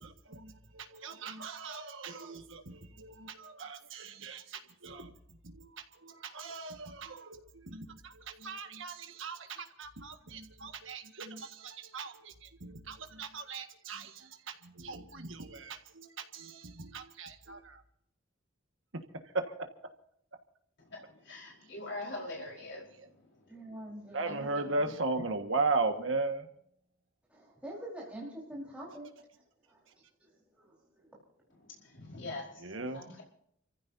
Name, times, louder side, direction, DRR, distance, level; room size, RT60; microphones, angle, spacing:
voice 1, 0.0-17.8 18.9-19.7 21.6-21.7 22.0-23.1 24.1-26.5 29.9-30.0 32.6-33.0, right 3 dB, 75° right, 6 dB, 1.7 m, -38 dB
voice 2, 20.9-22.8 31.8-32.6 32.9-33.2, left 2 dB, 60° left, -2 dB, 4.7 m, -42 dB
voice 3, 23.5-24.5 27.3-29.1 29.7-31.2, right 1 dB, 5° right, -5 dB, 4.6 m, -46 dB
29.5 x 15.0 x 2.8 m, 0.69 s
head